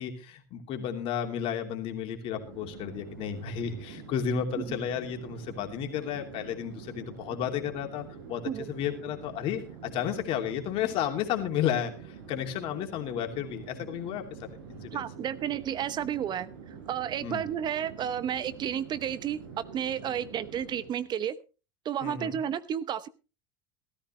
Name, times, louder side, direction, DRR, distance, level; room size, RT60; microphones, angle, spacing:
voice 1, 0.0-14.2 14.7-15.0 17.2-17.4 22.0-22.4, left 9 dB, 55° left, 4 dB, 3.0 m, -32 dB
Chatter / Fixed-wing aircraft airplane, 2.2-21.1, right 6 dB, 80° right, 5.1 m, -46 dB
voice 2, 14.9-16.5 16.9-21.4 21.8-23.1, right 9 dB, 40° right, 15 dB, 1.0 m, -32 dB
16.5 x 14.0 x 3.2 m, 0.33 s
hypercardioid pair, 85°, 11 cm